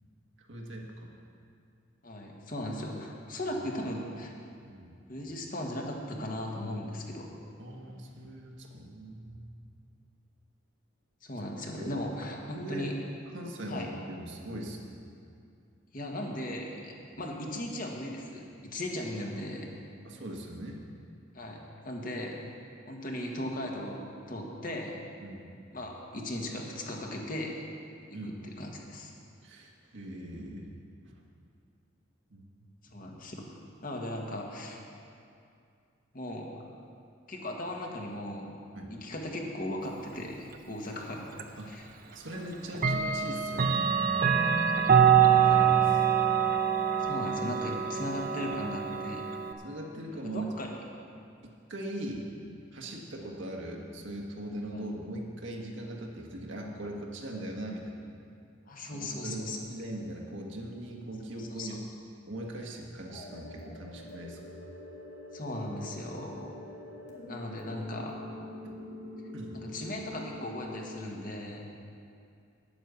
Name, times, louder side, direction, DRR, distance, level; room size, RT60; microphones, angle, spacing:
voice 1, 0.4-1.1 2.6-2.7 4.6-4.9 7.6-9.4 11.7-11.9 12.5-12.9 13.3-15.0 20.0-20.8 25.2-25.5 28.1-28.7 29.4-30.7 32.3-32.7 38.7-38.9 41.6-43.9 45.3-46.1 49.6-50.5 51.7-52.3 52.7-58.0 58.9-61.8 62.2-64.4 68.6-68.8 69.3-69.6, right 1 dB, 70° right, 0 dB, 1.6 m, -40 dB
voice 2, 2.0-4.3 5.1-7.3 11.2-12.9 13.7-13.9 15.9-19.7 21.3-22.4 22.9-25.0 25.7-27.6 28.2-29.1 32.9-33.5 33.8-34.8 36.1-36.5 37.3-38.5 38.9-41.3 41.7-41.9 44.3-44.7 47.0-49.2 50.3-50.7 54.7-54.8 58.7-59.6 61.4-61.7 65.3-66.5 67.2-68.2 69.5-71.7, left 1 dB, 45° left, 0 dB, 1.5 m, -37 dB
Clock, 41.4-41.5 42.7-49.5, right 7 dB, 50° right, 0.6 m, -25 dB
sound 1, 63.1-71.1, left 1 dB, 60° left, 2.2 m, -45 dB
9.6 x 8.8 x 7.0 m, 2.4 s
head